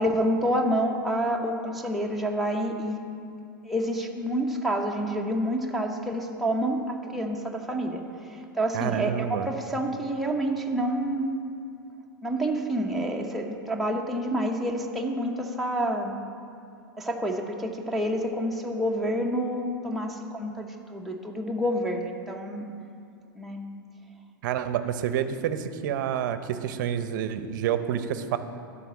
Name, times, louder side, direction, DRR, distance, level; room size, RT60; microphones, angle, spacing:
voice 1, 0.0-3.0 3.6-8.0 8.3-11.4 12.2-16.1 17.0-22.7 23.3-23.6, equal, ahead, -1 dB, 0.8 m, -28 dB
voice 2, 8.7-9.5 24.4-28.4, right 9 dB, 65° right, 11 dB, 0.6 m, -28 dB
12.0 x 4.2 x 7.2 m, 2.5 s
hypercardioid pair, 125°, 11 cm